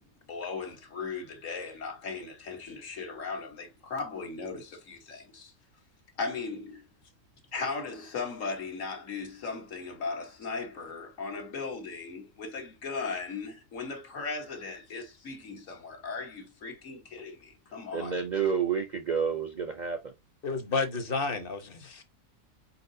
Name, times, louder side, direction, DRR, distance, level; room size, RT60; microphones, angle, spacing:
voice 1, 0.3-5.5 6.2-6.9 7.5-18.2, left 4 dB, 65° left, 1.6 m, -37 dB
voice 2, 17.9-20.1, right 6 dB, 45° right, 0.6 m, -29 dB
voice 3, 20.4-22.0, left 4 dB, 45° left, 1.1 m, -31 dB
4.6 x 4.4 x 2.6 m
omnidirectional pair, 1.4 m